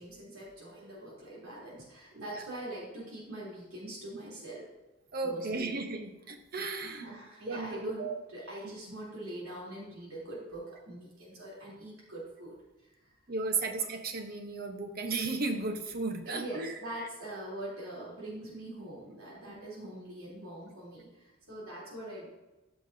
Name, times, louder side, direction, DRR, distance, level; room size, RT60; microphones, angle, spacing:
voice 1, 0.0-4.7 5.2-5.8 6.5-13.1 13.6-13.7 16.3-22.3, right 1 dB, 85° right, -6 dB, 3.2 m, -43 dB
voice 2, 5.1-7.1 7.5-8.2 8.6-8.7 13.3-17.1 19.5-19.6, right 3 dB, 45° right, 6 dB, 0.9 m, -35 dB
13.5 x 6.0 x 2.7 m, 1.1 s
head